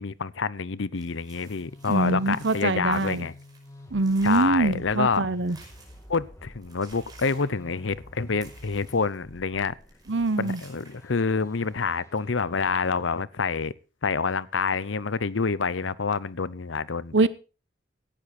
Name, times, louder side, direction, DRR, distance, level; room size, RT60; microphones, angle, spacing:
voice 1, 0.0-3.3 4.2-5.3 6.1-9.7 10.4-13.7 14.0-17.3, left 5 dB, 80° left, 0.7 m, -27 dB
sound 1, 0.9-6.2 6.5-9.6 9.8-11.8, right 4 dB, 20° right, 5.5 m, -54 dB
sound 2, 1.3-13.1, left 1 dB, 15° left, 2.1 m, -49 dB
voice 2, 1.9-3.3 3.9-5.6 10.1-10.6 17.1-17.3, right 3 dB, 70° right, 0.9 m, -24 dB
17.5 x 12.0 x 4.3 m
head